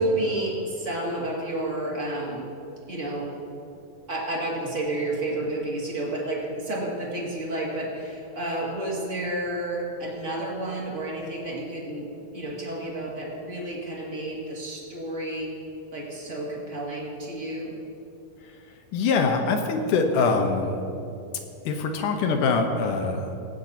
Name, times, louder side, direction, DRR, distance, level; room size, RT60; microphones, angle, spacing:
voice 1, 0.0-2.5 2.9-3.3 4.1-15.5 15.9-17.7, right 1 dB, 25° right, -4 dB, 2.0 m, -30 dB
voice 2, 18.9-20.7 21.7-23.2, left 4 dB, 70° left, 4 dB, 2.4 m, -23 dB
18.0 x 15.5 x 2.9 m, 2.8 s
omnidirectional pair, 4.1 m